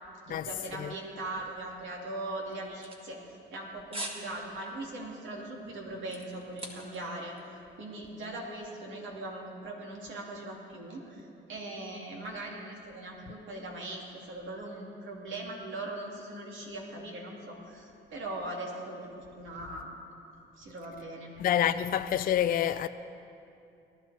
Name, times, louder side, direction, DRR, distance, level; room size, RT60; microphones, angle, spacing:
voice 1, 0.3-3.2 3.5-7.3 7.8-19.1 19.3-20.1 20.6-21.3, right 2 dB, 75° right, 2.7 m, -40 dB
sound 1, 2.5-3.6 3.9-4.3 4.6-4.8 5.3-7.1 7.4-7.5, right 1 dB, 30° right, 2.0 m, -41 dB
voice 2, 21.4-22.9, left 10 dB, 45° left, 0.4 m, -27 dB
18.5 x 12.5 x 4.2 m
cardioid pair, 90°, 20 cm